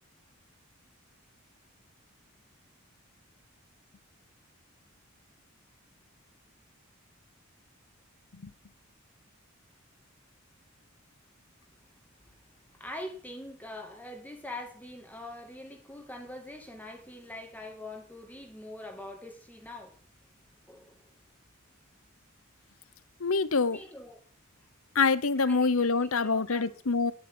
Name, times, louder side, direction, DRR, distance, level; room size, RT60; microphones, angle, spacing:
voice 1, 12.7-20.0 20.7-21.0 23.7-24.2 25.4-26.8, left 1 dB, 10° left, 2.1 m, -43 dB
voice 2, 23.2-23.8 24.9-27.1, left 4 dB, 80° left, 0.9 m, -26 dB
11.5 x 10.5 x 6.2 m
head